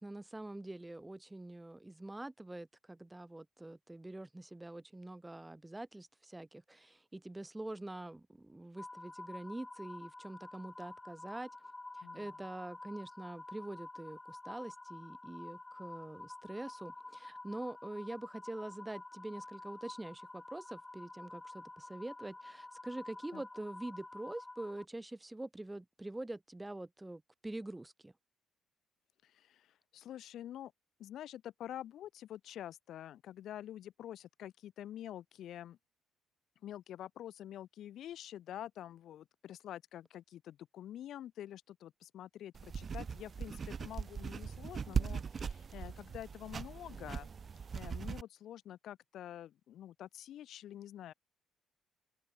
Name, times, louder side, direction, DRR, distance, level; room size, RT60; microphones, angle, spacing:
voice 1, 0.0-11.5 11.9-28.1, right 2 dB, 10° right, 0.7 m, -45 dB
sound 1, 8.8-24.8, left 2 dB, 10° left, 2.0 m, -50 dB
voice 2, 12.0-12.4 23.3-23.4 29.2-30.7 31.0-35.8 36.6-47.3 47.7-51.1, left 11 dB, 70° left, 0.7 m, -47 dB
sound 2, 42.5-48.2, right 6 dB, 35° right, 0.4 m, -40 dB
open air
cardioid pair, 120°, 0 cm